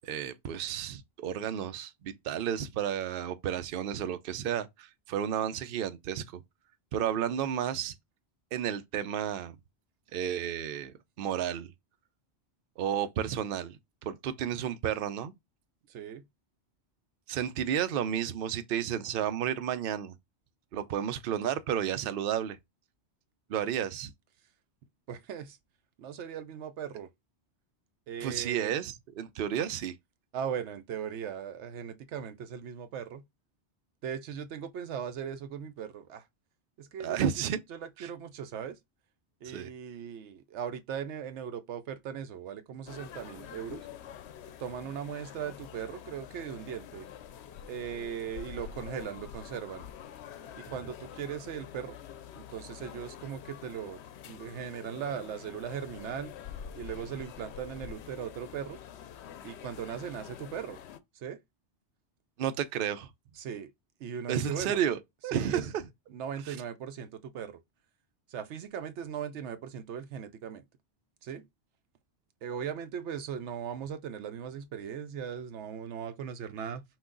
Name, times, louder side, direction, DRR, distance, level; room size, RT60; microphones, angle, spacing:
voice 1, 0.0-6.4 6.9-7.9 8.5-9.6 10.1-11.7 12.8-13.8 14.0-15.3 17.3-20.1 20.7-22.6 23.5-24.1 28.2-29.9 37.0-37.6 38.0-38.1 39.4-39.7 62.4-63.1 64.3-65.8 66.5-66.6, right 9 dB, 60° right, 0.7 m, -32 dB
voice 2, 15.9-16.3 25.1-25.6 26.0-27.1 28.1-28.7 30.3-33.2 34.0-36.3 36.8-38.8 39.4-43.9 44.6-47.1 47.7-49.9 50.6-52.0 52.3-54.0 54.3-56.3 56.8-58.8 59.4-60.8 61.1-61.4 63.4-63.7 64.0-64.8 65.3-65.7 66.1-67.6 68.3-70.6 71.2-71.5 72.4-76.8, right 8 dB, 90° right, 0.9 m, -38 dB
sound 1, 42.9-61.0, left 9 dB, 75° left, 0.8 m, -46 dB
5.8 x 2.4 x 3.8 m
omnidirectional pair, 1.1 m